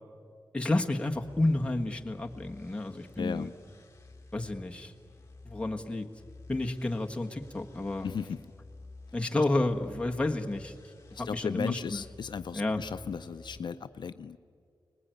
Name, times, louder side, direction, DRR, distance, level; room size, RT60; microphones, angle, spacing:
voice 1, 0.5-3.5 4.3-4.9 5.4-6.1 6.5-8.1 9.1-10.7 11.2-12.0 12.5-12.8, left 2 dB, 15° left, 1 dB, 1.5 m, -30 dB
sound 1, 1.1-13.6, left 3 dB, 35° left, 1.8 m, -52 dB
voice 2, 3.2-3.5 8.0-8.4 11.1-14.4, left 6 dB, 75° left, 10 dB, 0.6 m, -36 dB
30.0 x 20.0 x 9.3 m, 2.2 s
wide cardioid pair, 145°, 8 cm